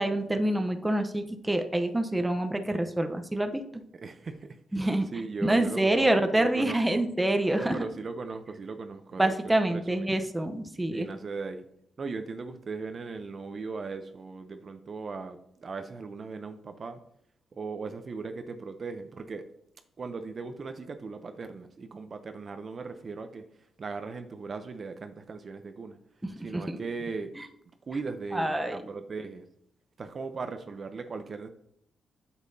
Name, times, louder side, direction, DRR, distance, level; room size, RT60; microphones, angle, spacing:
voice 1, 0.0-3.6 4.7-7.7 9.2-11.1 26.5-26.8 27.4-27.5 28.3-28.8, right 1 dB, 10° right, 6 dB, 0.7 m, -26 dB
voice 2, 4.0-6.1 6.4-7.1 7.5-10.1 10.9-11.7 12.0-17.0 17.5-19.4 20.0-23.4 23.8-26.0 26.4-27.3 27.9-29.5 30.0-31.5, right 4 dB, 45° right, 8 dB, 0.6 m, -38 dB
8.2 x 7.2 x 2.7 m, 0.72 s
cardioid pair, 95°, 0 cm